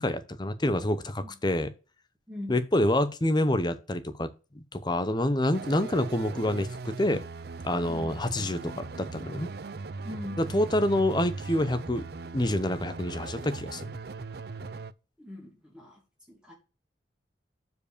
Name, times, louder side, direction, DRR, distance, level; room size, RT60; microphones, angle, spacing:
voice 1, 0.0-1.7 2.5-4.3 4.5-7.2 7.6-9.5 10.4-12.0 12.3-13.9, left 1 dB, 25° left, 0.7 m, -27 dB
sound 1, 5.5-14.9, right 3 dB, 55° right, 0.5 m, -39 dB
voice 2, 10.0-10.4 15.2-16.0 16.3-16.5, left 1 dB, 5° right, 2.5 m, -41 dB
7.5 x 4.7 x 6.6 m
head